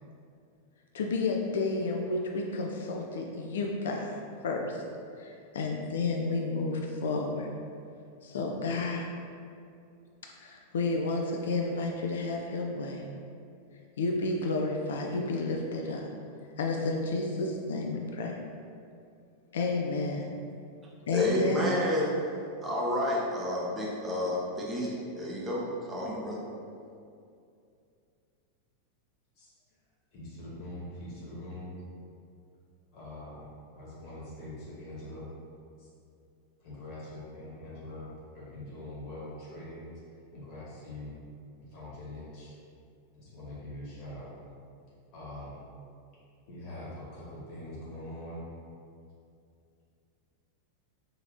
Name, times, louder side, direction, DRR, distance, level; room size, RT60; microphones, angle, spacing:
voice 1, 0.9-4.8 5.2-7.5 8.2-9.1 10.4-13.1 14.0-16.1 16.6-18.4 19.5-20.2 21.1-21.8, left 3 dB, 60° left, 1 dB, 0.3 m, -31 dB
voice 2, 21.1-22.1 22.6-26.4, left 1 dB, 20° right, -4 dB, 0.8 m, -30 dB
voice 3, 30.1-31.7 32.9-35.3 35.8-35.9 36.6-39.8 40.3-41.2 41.6-42.5 43.2-44.3 45.1-45.6 46.5-48.4, left 1 dB, 40° left, -8 dB, 1.2 m, -43 dB
4.9 x 2.8 x 2.6 m, 2.5 s
figure-of-eight pair, 90°, 0 cm